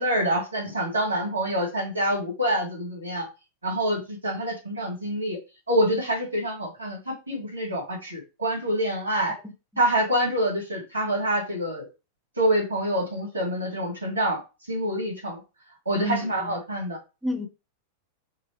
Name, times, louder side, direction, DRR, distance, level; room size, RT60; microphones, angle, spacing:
voice 1, 0.0-3.3 3.6-5.4 5.7-9.4 9.8-11.9 12.4-14.4 14.7-15.4 15.9-17.0, right 1 dB, 80° right, 1.8 m, -26 dB
voice 2, 9.4-9.8 15.9-16.6 17.2-17.5, left 2 dB, ahead, 0.8 m, -31 dB
4.7 x 2.2 x 3.1 m
figure-of-eight pair, 90°, 0 cm